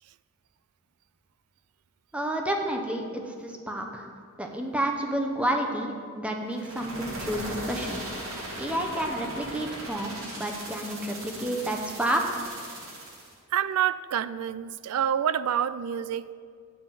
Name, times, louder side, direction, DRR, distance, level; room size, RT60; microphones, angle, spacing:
voice 1, 2.1-4.1 4.4-8.0 8.6-12.2, right 1 dB, 5° right, 2 dB, 0.8 m, -30 dB
sound 1, 6.5-13.3, right 1 dB, 65° right, 2.0 m, -38 dB
voice 2, 13.5-16.3, right 9 dB, 85° right, 16 dB, 0.3 m, -27 dB
7.8 x 5.7 x 7.4 m, 2.1 s
head